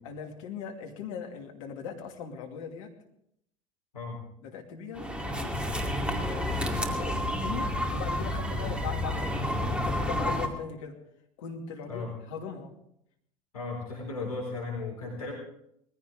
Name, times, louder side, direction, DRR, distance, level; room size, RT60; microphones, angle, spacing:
voice 1, 0.0-3.0 4.4-11.0 11.4-12.7, left 6 dB, 65° left, 2 dB, 2.6 m, -40 dB
voice 2, 3.9-4.2 8.6-8.7 11.9-12.1 13.5-15.3, left 3 dB, 80° left, -2 dB, 4.3 m, -36 dB
sound 1, 5.0-10.5, left 1 dB, 5° right, 2.3 m, -30 dB
20.5 x 15.5 x 3.8 m, 0.74 s
figure-of-eight pair, 70°, 19 cm